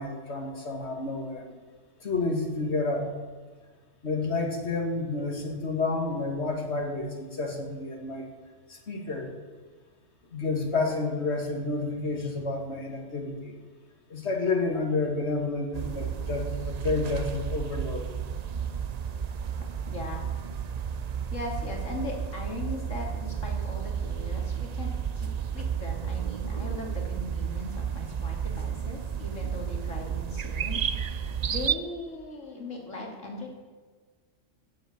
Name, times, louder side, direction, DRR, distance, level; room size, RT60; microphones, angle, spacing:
voice 1, 0.0-1.6 2.0-3.1 4.0-8.3 8.7-9.3 10.3-13.5 14.1-18.1, left 3 dB, 55° left, 2 dB, 2.5 m, -30 dB
sound 1, 15.7-31.8, right 7 dB, 50° right, 0.5 m, -32 dB
voice 2, 19.9-20.3 21.3-33.5, left 2 dB, 75° left, 0 dB, 3.1 m, -39 dB
16.0 x 7.9 x 7.3 m, 1.4 s
omnidirectional pair, 1.3 m